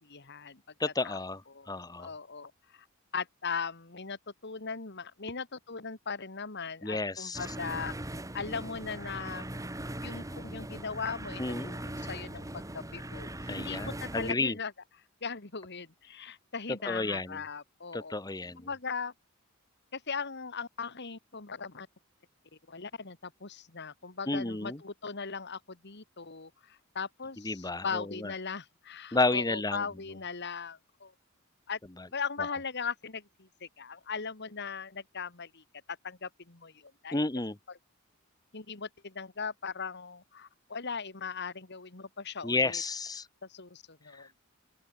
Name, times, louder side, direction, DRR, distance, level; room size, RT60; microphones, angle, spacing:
voice 1, 0.0-0.6 1.0-1.2 1.5-1.7 2.0-2.9 3.1-7.9 8.3-9.5 10.0-14.7 15.2-18.2 18.6-19.1 19.9-21.9 22.7-31.1 31.7-31.8 32.1-37.2 38.5-42.8 43.4-44.3, left 5 dB, 55° left, 2.2 m, -39 dB
voice 2, 0.8-1.4 1.7-2.1 6.8-7.4 11.4-11.9 13.5-14.6 16.8-17.4 17.9-18.7 24.3-24.8 27.4-28.3 29.1-29.8 32.0-32.1 37.1-37.6 42.4-43.3 44.1-44.3, left 3 dB, 20° left, 1.1 m, -31 dB
sound 1, 7.3-14.3, right 1 dB, 15° right, 2.1 m, -40 dB
open air
head